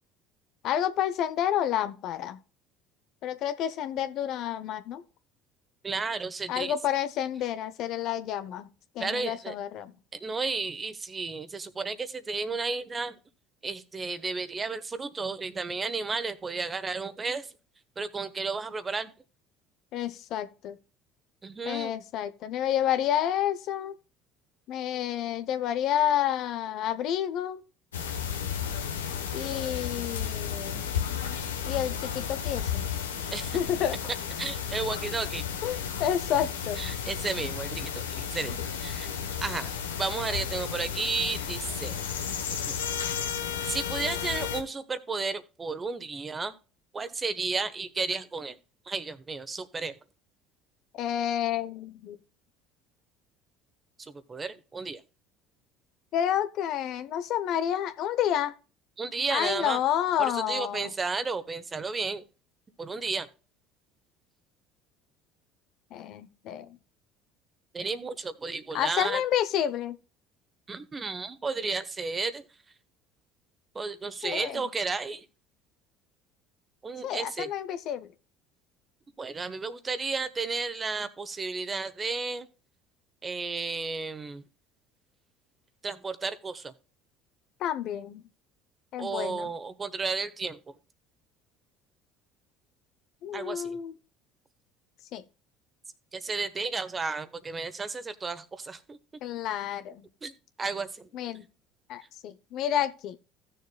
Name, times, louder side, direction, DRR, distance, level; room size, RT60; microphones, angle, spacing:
voice 1, 0.6-2.4 3.2-5.0 6.5-8.7 8.9-9.9 19.9-20.8 21.6-24.0 24.7-27.6 29.3-30.8 31.6-32.8 33.5-34.0 35.6-36.8 50.9-52.2 56.1-58.5 59.3-60.9 65.9-66.8 68.7-70.0 74.2-74.6 77.0-78.1 87.6-88.3 88.9-89.5 93.2-93.9 95.1-95.2 99.2-100.0 101.1-101.4 101.9-103.2, left 10 dB, 60° left, 0.8 m, -29 dB
voice 2, 5.8-6.7 9.0-9.5 10.2-13.2 13.6-17.5 18.0-19.1 21.4-21.9 33.3-33.6 34.4-35.4 36.8-39.1 39.4-39.7 40.0-42.0 42.7-42.8 43.6-46.5 46.9-48.6 48.9-49.9 54.0-55.0 59.0-59.8 60.2-62.2 62.8-63.3 67.7-69.2 70.7-72.4 73.7-75.2 76.8-77.5 79.2-82.5 83.2-84.4 85.8-86.7 89.0-90.6 93.3-93.8 96.1-99.0 100.2-100.3 100.6-101.1, right 4 dB, 25° right, 1.2 m, -33 dB
sound 1, 27.9-44.6, left 8 dB, 90° left, 1.1 m, -33 dB
16.0 x 6.9 x 2.3 m
hypercardioid pair, 70°, 0 cm